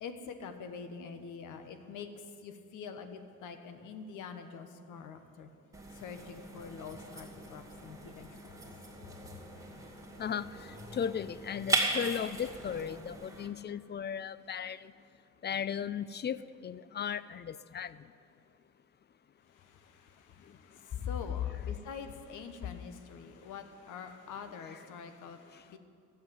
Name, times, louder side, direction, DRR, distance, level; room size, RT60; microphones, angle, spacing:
voice 1, 0.0-5.5 5.9-9.4 19.5-25.8, left 6 dB, 85° left, 8 dB, 1.2 m, -46 dB
sound 1, 5.7-13.5, right 2 dB, 10° right, 2.2 m, -38 dB
voice 2, 10.2-14.9 15.4-18.1 20.4-21.1 25.5-25.6, left 8 dB, 35° left, 17 dB, 0.4 m, -37 dB
12.0 x 7.6 x 8.8 m, 2.4 s
cardioid pair, 90°, 30 cm